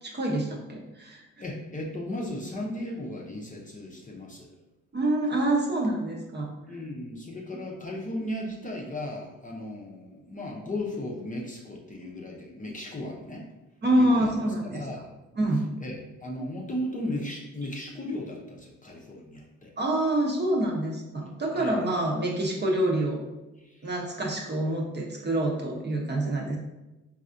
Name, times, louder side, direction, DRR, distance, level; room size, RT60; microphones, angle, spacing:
voice 1, 0.0-1.2 4.9-6.5 13.8-14.8 15.4-15.7 19.8-23.2 23.8-26.6, right 1 dB, 30° right, -1 dB, 0.8 m, -26 dB
voice 2, 1.4-4.5 6.6-13.5 13.9-14.3 14.6-15.1 15.8-19.7 21.5-21.8 23.6-23.9, left 1 dB, 20° left, -2 dB, 0.7 m, -36 dB
4.0 x 2.4 x 2.5 m, 1.0 s
hypercardioid pair, 55°, 36 cm